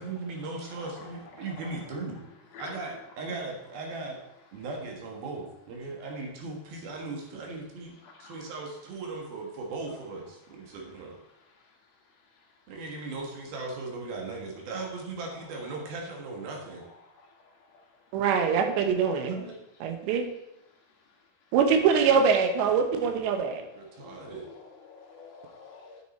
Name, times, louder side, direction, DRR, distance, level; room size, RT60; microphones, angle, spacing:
voice 1, 0.0-2.2 2.6-4.2 4.5-7.9 8.2-11.2 12.7-16.8 19.3-19.5 23.7-24.5, right 3 dB, 65° right, 0 dB, 3.3 m, -38 dB
voice 2, 0.6-1.1 1.4-1.8 2.5-2.8 8.2-8.4 22.7-23.0 24.0-26.0, left 4 dB, 65° left, 0 dB, 3.3 m, -48 dB
voice 3, 18.1-19.4 19.8-20.2 21.5-23.6, right 6 dB, 90° right, 6 dB, 3.4 m, -23 dB
9.2 x 9.0 x 4.3 m, 0.86 s
omnidirectional pair, 4.9 m